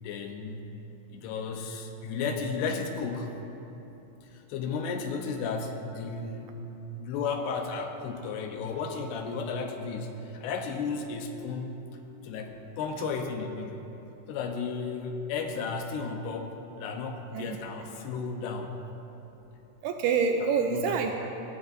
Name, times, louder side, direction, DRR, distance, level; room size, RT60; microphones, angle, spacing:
voice 1, 0.0-0.6 1.1-3.4 4.3-11.8 12.2-13.8 14.3-18.7 20.7-21.0, left 5 dB, 75° left, 3 dB, 2.6 m, -34 dB
voice 2, 17.3-17.9 19.8-21.1, right 5 dB, 90° right, 4 dB, 2.2 m, -27 dB
20.0 x 16.0 x 2.7 m, 3.0 s
omnidirectional pair, 5.3 m